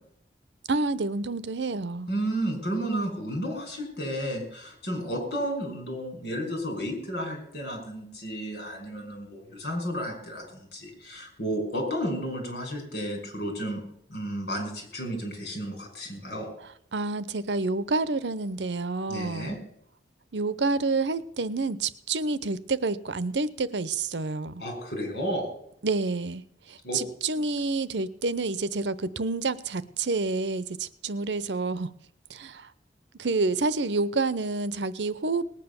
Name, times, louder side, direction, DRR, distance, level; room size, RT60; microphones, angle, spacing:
voice 1, 0.7-2.1 16.9-19.6 20.3-24.6 25.8-31.9 32.3-32.7 33.2-35.5, right 3 dB, 85° right, 16 dB, 0.8 m, -28 dB
voice 2, 2.1-13.8 14.1-16.5 19.1-19.6 24.6-25.5 26.8-27.0, equal, 65° left, 3 dB, 5.8 m, -32 dB
19.0 x 9.3 x 7.0 m, 0.71 s
head